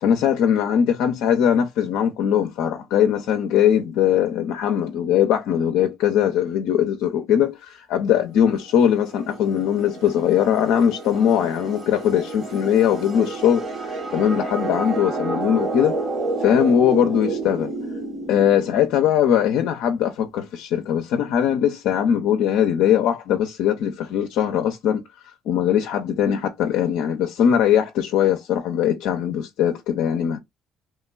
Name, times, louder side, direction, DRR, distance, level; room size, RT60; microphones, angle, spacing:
voice 1, 0.0-16.0 16.4-17.7 18.3-25.0 25.5-30.4, left 9 dB, 75° left, 0.4 m, -20 dB
sound 1, 8.7-19.3, right 3 dB, 40° right, 1.0 m, -30 dB
3.1 x 2.1 x 2.2 m
hypercardioid pair, 60°, 0 cm